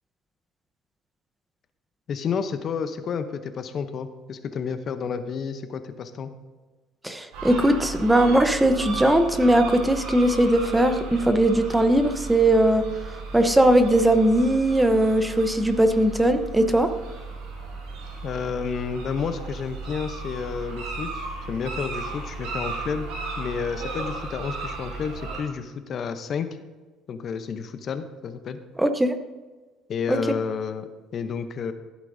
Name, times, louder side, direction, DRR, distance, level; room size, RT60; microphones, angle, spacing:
voice 1, 2.1-6.3 18.2-23.1 23.4-26.5 27.1-28.6 29.9-31.7, left 6 dB, 50° left, 10 dB, 0.7 m, -30 dB
voice 2, 7.0-12.8 13.3-16.9 28.8-29.1 30.1-30.2, right 1 dB, 10° right, 8 dB, 0.8 m, -19 dB
sound 1, 7.3-25.4, right 3 dB, 85° right, 3.5 m, -35 dB
14.5 x 8.2 x 2.7 m, 1.3 s
cardioid pair, 100°, 0 cm